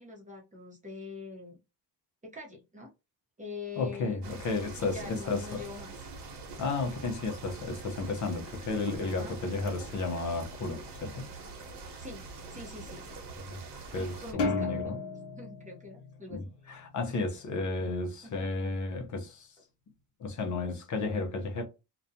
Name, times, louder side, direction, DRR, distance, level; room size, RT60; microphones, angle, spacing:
voice 1, 0.0-1.6 2.2-2.9 3.4-4.2 4.8-6.0 9.0-9.3 12.0-13.2 14.0-14.9 15.3-16.5 18.2-18.5, left 3 dB, 20° right, 0.7 m, -44 dB
voice 2, 3.8-5.6 6.6-11.3 13.5-13.6 13.9-15.0 16.3-16.4 16.7-19.5 20.2-21.6, left 3 dB, 45° left, 0.6 m, -33 dB
sound 1, 4.2-14.3, right 3 dB, 80° right, 1.0 m, -44 dB
sound 2, 14.4-16.9, left 3 dB, 80° left, 0.9 m, -34 dB
2.4 x 2.1 x 2.6 m
cardioid pair, 145°, 41 cm